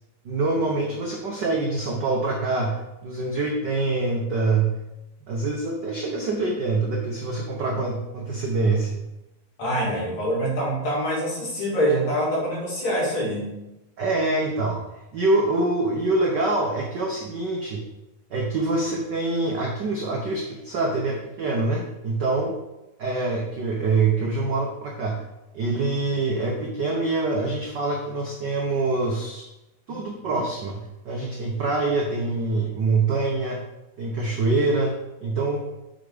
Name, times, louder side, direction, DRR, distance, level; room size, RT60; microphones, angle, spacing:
voice 1, 0.2-4.8 5.3-9.0 14.0-14.8 15.1-17.8 18.3-22.5 23.0-25.2 25.5-29.4 29.9-33.6 34.0-34.9 35.2-35.6, right 3 dB, 80° right, 0 dB, 0.9 m, -25 dB
voice 2, 9.6-13.5 29.9-30.0, equal, 65° left, -6 dB, 4.1 m, -25 dB
8.3 x 5.2 x 5.0 m, 0.95 s
omnidirectional pair, 3.4 m